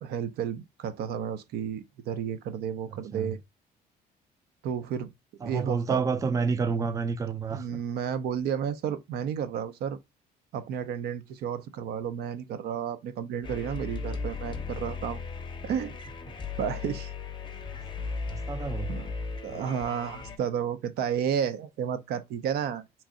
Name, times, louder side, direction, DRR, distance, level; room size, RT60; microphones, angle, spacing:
voice 1, 0.0-3.4 4.6-5.1 5.4-6.0 7.5-10.0 10.5-15.2 15.6-16.0 16.6-17.1 18.9-19.1 19.4-22.8, right 8 dB, 70° right, 0.5 m, -32 dB
voice 2, 2.9-3.4 5.4-7.8 17.7-17.8 18.3-18.9, right 5 dB, 20° right, 0.4 m, -29 dB
sound 1, 13.4-20.4, left 4 dB, 30° left, 0.6 m, -36 dB
3.0 x 2.5 x 3.6 m
cardioid pair, 110°, 17 cm